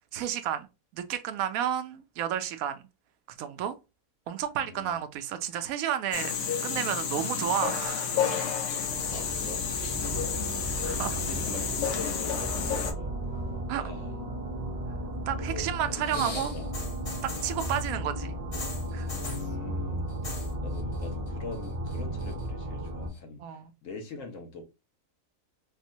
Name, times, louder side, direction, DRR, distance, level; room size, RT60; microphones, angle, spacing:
voice 1, 0.1-0.7 0.9-2.8 3.3-3.7 4.3-6.3 6.6-8.2 10.8-11.2 13.7-13.8 15.3-16.5 17.2-18.3 18.9-19.1 23.4-23.7, right 10 dB, 70° right, 0.9 m, -31 dB
voice 2, 4.6-5.0 8.5-13.2 13.8-14.1 15.4-16.7 17.4-17.6 19.1-24.6, left 3 dB, 60° left, 1.2 m, -43 dB
sound 1, 6.1-12.9, left 7 dB, 90° left, 1.3 m, -31 dB
sound 2, 8.8-23.1, right 1 dB, 40° right, 0.6 m, -35 dB
sound 3, 15.9-17.9 18.5-19.5 20.1-20.5 20.8-21.3 21.6-22.4 23.2-23.3, left 2 dB, 35° left, 0.6 m, -40 dB
4.3 x 2.1 x 2.6 m
omnidirectional pair, 1.6 m